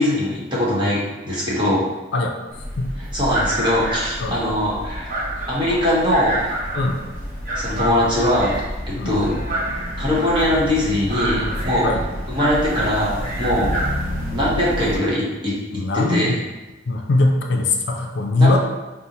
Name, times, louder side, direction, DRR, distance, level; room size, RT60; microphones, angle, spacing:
voice 1, 0.0-1.8 3.1-5.1 5.5-6.5 7.5-8.6 9.0-9.3 10.0-11.9 12.3-13.7 14.3-15.5 15.9-16.3 18.3-18.6, left 1 dB, 25° right, -6 dB, 1.0 m, -21 dB
sound 1, 2.5-15.0, right 1 dB, 50° right, 0.8 m, -27 dB
voice 2, 15.7-16.4 16.9-18.6, left 2 dB, 65° left, 1 dB, 0.4 m, -20 dB
5.1 x 2.1 x 2.9 m, 1.1 s
head